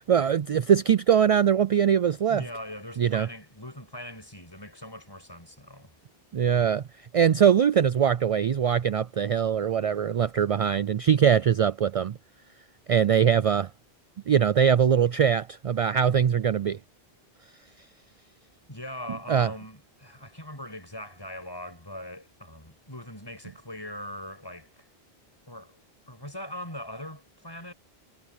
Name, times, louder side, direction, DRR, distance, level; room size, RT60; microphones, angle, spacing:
voice 1, 0.1-2.4 3.0-3.3 6.3-6.8 7.1-12.2 12.9-13.7 14.3-16.8 19.3-19.5, right 8 dB, 60° right, 0.3 m, -22 dB
voice 2, 2.3-5.9 6.4-6.6 18.7-24.9 25.5-27.7, left 1 dB, 20° left, 6.3 m, -41 dB
omnidirectional pair, 1.1 m